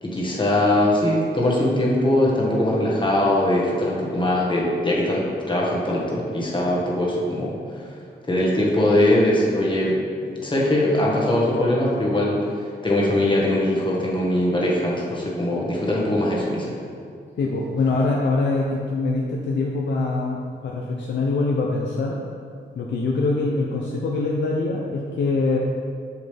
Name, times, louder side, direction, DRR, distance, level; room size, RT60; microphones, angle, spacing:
voice 1, 0.0-7.6 8.3-10.0 10.4-12.4 12.8-16.8, left 1 dB, 25° left, -4 dB, 1.6 m, -21 dB
voice 2, 17.4-22.2 22.7-25.6, left 3 dB, 75° left, -2 dB, 0.7 m, -24 dB
6.6 x 6.5 x 3.4 m, 2.3 s
cardioid pair, 80°, 18 cm